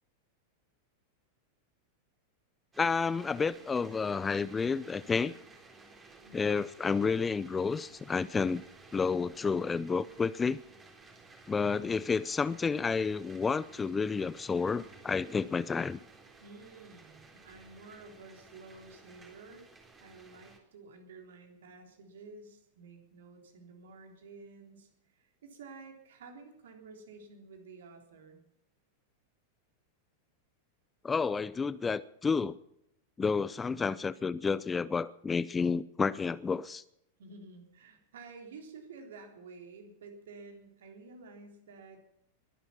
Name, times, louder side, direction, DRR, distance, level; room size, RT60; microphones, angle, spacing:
sound 1, 2.7-20.6, right 3 dB, 15° right, 3.7 m, -55 dB
voice 1, 2.8-5.3 6.3-8.6 8.9-10.6 11.5-16.0 31.0-32.6 33.2-36.8, left 5 dB, 15° left, 0.5 m, -30 dB
voice 2, 6.2-6.6 16.4-19.6 20.0-28.4 37.2-42.0, right 4 dB, 60° right, 3.6 m, -51 dB
22.0 x 11.0 x 5.7 m
figure-of-eight pair, 90°, 0 cm